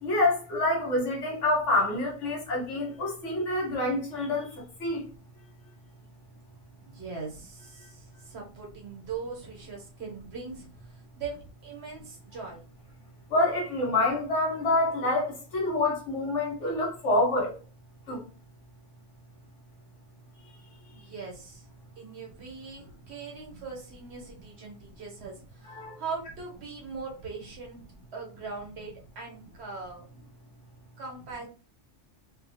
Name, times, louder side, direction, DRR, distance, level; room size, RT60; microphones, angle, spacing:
voice 1, 0.0-5.1 13.3-17.5 18.1-18.2 25.7-26.0, left 2 dB, 80° left, 1.3 m, -27 dB
voice 2, 6.8-10.7 11.2-12.6 20.9-21.6 22.0-27.8 28.1-30.1 31.0-31.5, right 4 dB, 65° right, 1.1 m, -40 dB
2.6 x 2.3 x 2.7 m
omnidirectional pair, 1.2 m